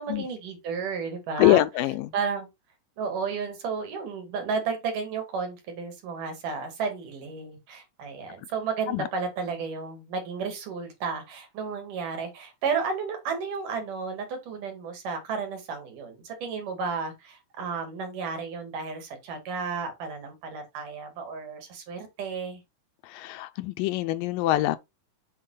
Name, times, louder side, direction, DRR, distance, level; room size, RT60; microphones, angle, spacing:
voice 1, 0.0-1.7 2.1-2.5 3.0-22.6, right 5 dB, 70° right, 3.6 m, -32 dB
voice 2, 1.4-2.1 8.9-9.1 23.0-24.8, left 15 dB, 85° left, 2.3 m, -24 dB
7.5 x 4.3 x 3.9 m
omnidirectional pair, 3.9 m